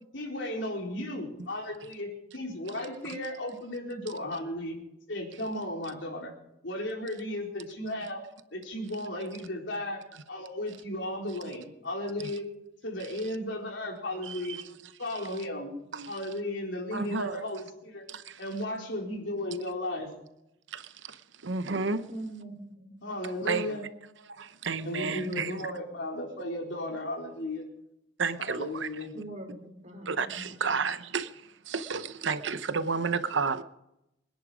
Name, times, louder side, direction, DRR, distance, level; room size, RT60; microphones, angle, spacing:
voice 1, 0.1-4.8 5.1-6.3 6.6-8.2 8.5-10.0 10.3-12.5 12.8-14.6 15.0-15.7 16.1-18.0 18.4-20.1 23.0-23.8 24.8-27.6 28.5-29.1, left 1 dB, 70° left, 4.3 m, -35 dB
voice 2, 14.3-14.6 15.9-16.1 16.9-17.4 18.1-18.4 20.7-22.0 23.5-23.8 24.4-25.6 28.2-28.9 30.1-33.6, right 5 dB, 75° right, 0.9 m, -32 dB
voice 3, 22.1-23.0 25.1-26.1 29.1-30.9, right 1 dB, 40° right, 4.5 m, -43 dB
25.5 x 10.5 x 5.1 m
head